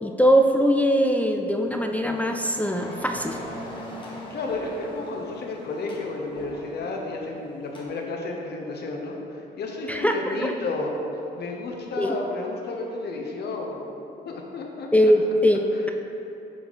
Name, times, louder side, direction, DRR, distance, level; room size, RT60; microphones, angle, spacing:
voice 1, 0.0-3.4 9.9-10.5 12.0-12.2 14.9-15.6, equal, 10° left, 3 dB, 0.4 m, -21 dB
sound 1, 1.3-7.9, left 1 dB, 25° left, 1.2 m, -41 dB
voice 2, 4.3-10.9 11.3-14.0 14.2-14.9 15.7-15.9, left 3 dB, 60° left, 1 dB, 0.8 m, -32 dB
7.8 x 3.7 x 4.0 m, 2.9 s
cardioid pair, 85°, 19 cm